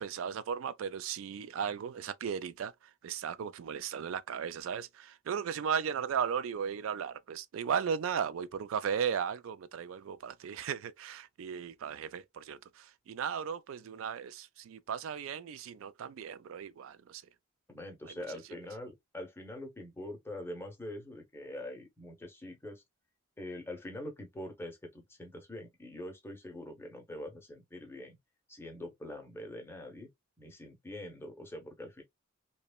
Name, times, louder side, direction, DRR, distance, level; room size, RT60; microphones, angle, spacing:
voice 1, 0.0-2.7 3.0-17.2, right 7 dB, 75° right, 0.3 m, -36 dB
voice 2, 17.7-22.8 23.4-28.2 28.5-30.1 30.4-32.0, left 1 dB, 10° left, 0.7 m, -44 dB
3.0 x 2.2 x 2.2 m
head